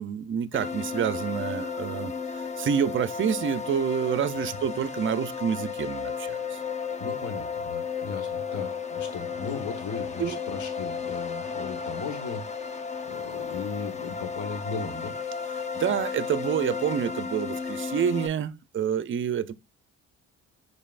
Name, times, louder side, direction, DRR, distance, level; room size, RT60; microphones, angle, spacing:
voice 1, 0.0-6.6 10.2-10.4 15.7-19.5, right 8 dB, 40° right, 0.5 m, -28 dB
sound 1, 0.5-18.3, left 6 dB, 25° left, 0.6 m, -33 dB
voice 2, 7.0-15.1, left 5 dB, 70° left, 1.4 m, -37 dB
5.4 x 3.9 x 2.4 m
cardioid pair, 90°, 30 cm